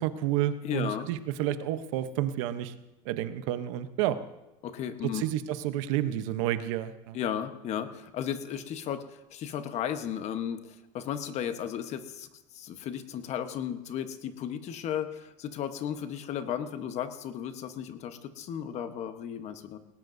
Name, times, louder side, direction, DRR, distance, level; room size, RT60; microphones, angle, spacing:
voice 1, 0.0-2.7 3.1-4.2 5.0-7.2, right 12 dB, 75° right, 11 dB, 0.9 m, -30 dB
voice 2, 0.6-1.1 4.6-5.2 7.1-9.0 9.3-10.7 10.9-12.3 12.5-19.8, left 9 dB, 45° left, 9 dB, 1.1 m, -34 dB
19.0 x 18.0 x 2.7 m, 0.97 s
supercardioid pair, 135°, 16 cm